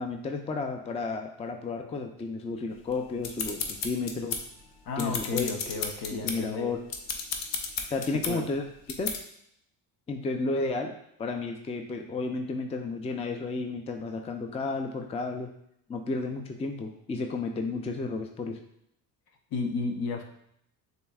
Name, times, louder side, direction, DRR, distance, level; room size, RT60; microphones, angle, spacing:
voice 1, 0.0-4.4 5.0-5.5 6.1-6.8 7.9-8.6 9.0-9.1 10.1-10.9 11.2-15.5 15.9-18.6, left 3 dB, 15° left, 4 dB, 0.4 m, -32 dB
sound 1, 2.9-4.6 4.9-6.4 6.8-8.3 8.9-9.2, left 5 dB, 85° left, 0.7 m, -33 dB
voice 2, 4.8-6.7 8.2-8.5 19.5-20.2, left 3 dB, 55° left, 4 dB, 0.8 m, -33 dB
6.6 x 2.7 x 2.3 m, 0.74 s
supercardioid pair, 70°, 43 cm